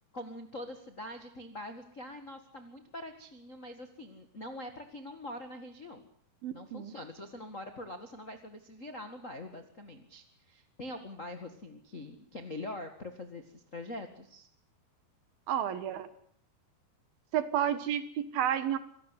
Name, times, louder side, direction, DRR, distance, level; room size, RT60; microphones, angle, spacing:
voice 1, 0.1-6.0 6.5-14.5, left 1 dB, 50° left, 6 dB, 0.9 m, -44 dB
voice 2, 6.4-6.9 15.5-16.1 17.3-18.8, right 10 dB, 65° right, 12 dB, 3.1 m, -31 dB
26.0 x 17.5 x 8.2 m, 0.62 s
omnidirectional pair, 4.8 m